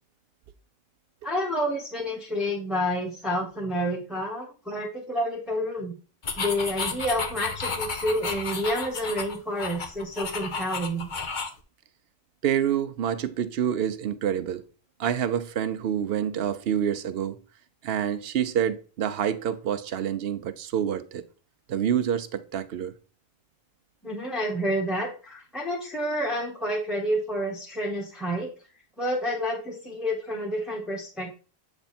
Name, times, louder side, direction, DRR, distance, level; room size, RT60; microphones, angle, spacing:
voice 1, 1.2-5.9 6.4-11.1 24.0-28.5 29.0-31.3, equal, ahead, 1.3 m, -29 dB
sound 1, 6.2-11.6, left 4 dB, 50° left, 1.0 m, -32 dB
voice 2, 12.4-14.6 15.0-17.4 17.8-21.2 21.7-22.9, right 9 dB, 75° right, 0.8 m, -27 dB
8.0 x 3.5 x 4.2 m
omnidirectional pair, 1.0 m